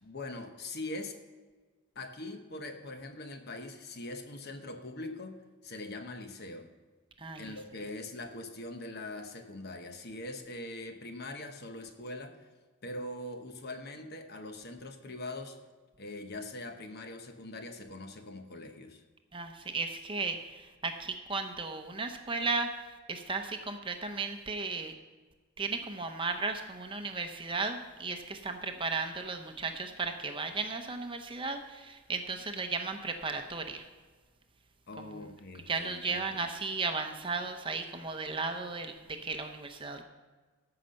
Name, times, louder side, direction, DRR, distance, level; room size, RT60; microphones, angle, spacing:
voice 1, 0.0-1.2 1.9-5.4 5.6-6.7 7.4-12.5 12.8-15.6 16.0-19.0 34.9-36.5, left 2 dB, 45° left, 6 dB, 1.1 m, -42 dB
voice 2, 7.2-7.5 19.3-24.9 25.6-33.8 35.0-35.3 35.7-40.0, right 4 dB, 25° right, 6 dB, 0.8 m, -35 dB
14.0 x 5.8 x 6.5 m, 1.4 s
head